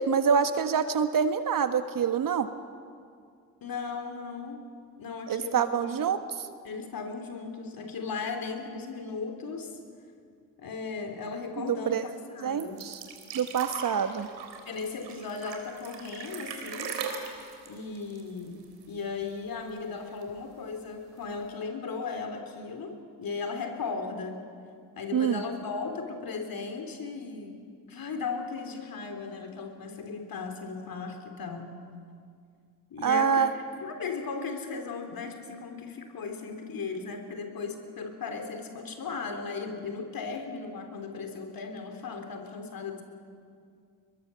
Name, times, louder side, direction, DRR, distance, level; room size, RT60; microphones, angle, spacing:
voice 1, 0.0-2.5 5.3-6.5 11.6-12.0 12.4-13.0 13.3-14.3 25.1-25.4 33.0-33.5, right 7 dB, 45° right, 10 dB, 1.4 m, -26 dB
voice 2, 3.6-4.6 5.0-6.0 6.6-9.8 10.6-12.8 14.7-17.0 17.7-18.6 18.9-24.4 25.0-27.6 27.9-31.7 32.9-33.5 33.7-43.0, left 4 dB, 50° left, 5 dB, 3.6 m, -36 dB
sound 1, 12.6-19.0 19.3-19.4 19.7-20.4 21.2-21.3, right 6 dB, 65° right, 3.5 m, -39 dB
22.5 x 22.0 x 6.9 m, 2.2 s
hypercardioid pair, 50°, 46 cm